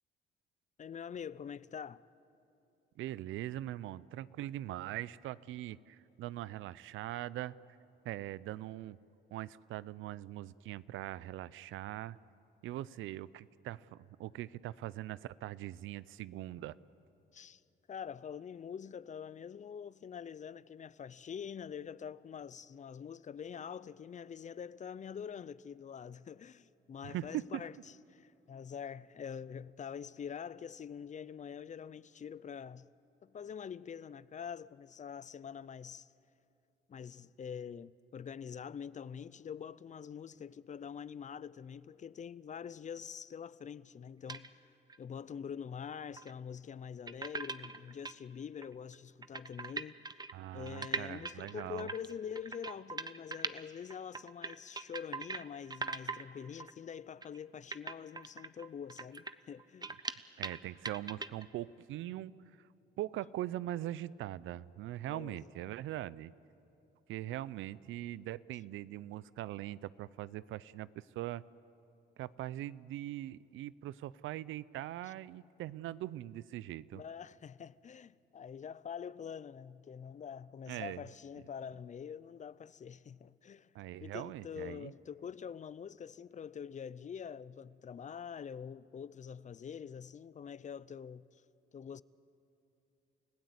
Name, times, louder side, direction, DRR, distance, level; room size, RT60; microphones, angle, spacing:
voice 1, 0.8-2.0 17.3-17.6 17.9-27.7 28.1-32.9 33.2-36.1 36.9-44.7 45.0-50.2 50.5-59.9 65.1-65.5 75.1-75.2 76.9-83.7 84.0-91.4 91.7-92.0, left 7 dB, 40° left, 0.5 m, -45 dB
voice 2, 3.0-7.6 8.0-9.0 9.3-12.2 12.6-16.8 27.0-27.6 50.3-51.9 60.4-62.3 63.0-66.3 67.1-71.4 72.2-77.0 80.7-81.0 83.7-84.9, right 14 dB, 85° right, 0.5 m, -41 dB
sound 1, 44.3-44.5 44.9-45.0 46.2-46.3 47.1-48.1 48.6-48.7 48.9-49.0 49.2-53.6 53.9-55.4 55.7-56.3 56.6-56.7 57.2-57.4 57.7-60.6 60.8-61.4, right 3 dB, 20° right, 0.8 m, -41 dB
29.5 x 16.0 x 8.1 m
cardioid pair, 90°, 20 cm